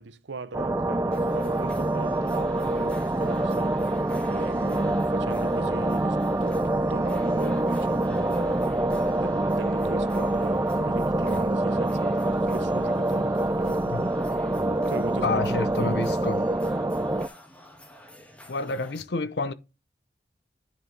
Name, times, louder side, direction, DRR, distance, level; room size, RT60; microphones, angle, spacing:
voice 1, 0.0-3.8 4.3-8.6 9.2-14.0 14.9-15.3 15.8-16.0, right 4 dB, 80° right, 0.7 m, -39 dB
sound 1, 0.5-17.3, right 1 dB, 15° right, 0.3 m, -25 dB
sound 2, 1.1-19.0, left 1 dB, 5° left, 1.4 m, -48 dB
voice 2, 15.2-16.5 18.5-19.5, left 3 dB, 65° left, 0.7 m, -29 dB
10.0 x 4.9 x 3.9 m
head